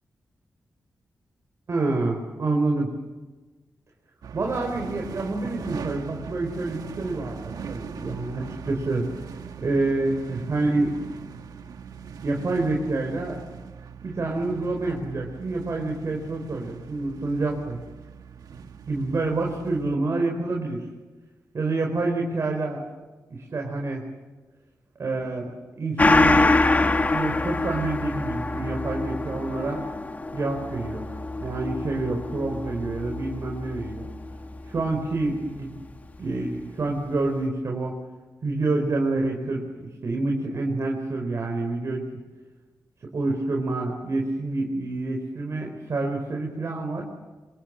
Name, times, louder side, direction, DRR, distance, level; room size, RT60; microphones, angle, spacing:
voice 1, 1.7-2.9 4.3-9.1 9.6-11.0 12.2-13.4 14.0-17.8 18.9-20.8 21.5-22.8 23.3-24.0 25.0-25.5 25.8-26.6 27.1-29.8 30.3-31.1 31.4-34.1 34.7-35.8 36.2-37.9 38.4-42.1 43.1-47.0, right 2 dB, 50° right, 1 dB, 4.7 m, -27 dB
sound 1, 4.2-20.0, right 6 dB, 90° right, 1.5 m, -40 dB
Gong, 26.0-34.9 35.3-35.4, left 2 dB, 25° left, 1.6 m, -25 dB
28.5 x 26.5 x 7.7 m, 1.3 s
wide cardioid pair, 150°, 6 cm